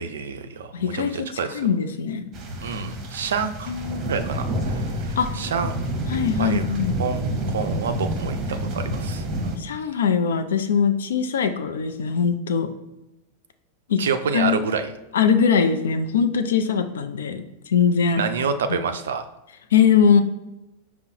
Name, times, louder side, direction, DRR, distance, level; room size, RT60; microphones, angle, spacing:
voice 1, 0.0-1.7 2.6-3.7 4.1-5.8 6.4-6.7 7.0-9.5 14.0-14.9 18.1-19.3, right 6 dB, 65° right, 7 dB, 0.3 m, -28 dB
voice 2, 0.7-1.3 1.5-2.2 3.7-4.2 5.2-5.3 6.1-6.9 9.6-12.7 13.9-14.0 14.3-14.6 15.1-18.2 19.7-20.2, left 6 dB, 65° left, 8 dB, 0.4 m, -21 dB
sound 1, 2.3-9.6, right 1 dB, 30° right, 0.9 m, -28 dB
5.2 x 2.1 x 4.3 m, 0.99 s
figure-of-eight pair, 90°, 0 cm